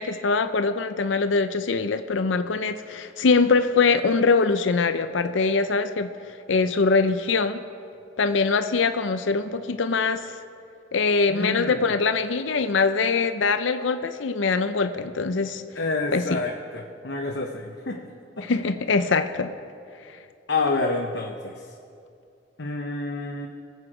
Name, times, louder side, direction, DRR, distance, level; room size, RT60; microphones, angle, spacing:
voice 1, 0.0-6.1 6.5-7.6 8.2-10.3 10.9-15.6 16.1-16.4 18.4-19.5, left 4 dB, 85° left, 10 dB, 0.6 m, -23 dB
voice 2, 11.3-11.9 15.7-18.1 18.4-18.5 20.5-21.7 22.6-23.5, left 3 dB, 65° left, 1 dB, 0.9 m, -28 dB
22.5 x 8.2 x 4.9 m, 2.4 s
head